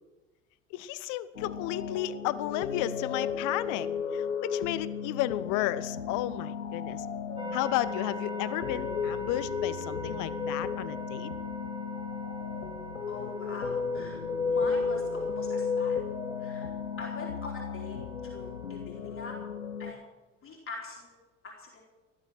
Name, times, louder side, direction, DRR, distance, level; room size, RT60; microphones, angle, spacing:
voice 1, 0.7-3.9 4.1-7.1 7.5-11.3, left 15 dB, 55° left, 16 dB, 0.9 m, -33 dB
sound 1, 1.3-19.9, left 6 dB, 85° left, 1.0 m, -34 dB
sound 2, 7.4-18.8, right 2 dB, 15° right, 3.4 m, -43 dB
voice 2, 13.1-16.0 16.4-16.7 17.0-19.4 19.8-20.0 20.4-21.2 21.4-21.8, left 3 dB, 35° left, -2 dB, 3.8 m, -43 dB
17.0 x 11.5 x 6.4 m, 1.2 s
figure-of-eight pair, 65°, 37 cm